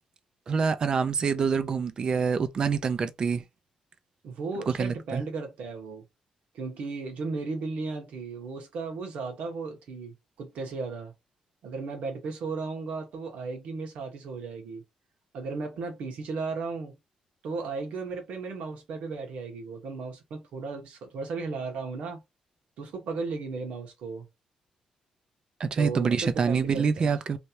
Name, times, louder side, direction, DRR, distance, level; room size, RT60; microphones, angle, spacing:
voice 1, 0.5-3.4 4.7-5.2 25.6-27.4, right 5 dB, 40° right, 0.5 m, -26 dB
voice 2, 4.2-6.0 6.5-11.1 11.6-14.8 15.3-17.0 17.4-22.2 22.8-24.3 25.7-27.2, right 4 dB, 80° right, 1.5 m, -35 dB
3.3 x 2.7 x 2.8 m
cardioid pair, 145°, 2 cm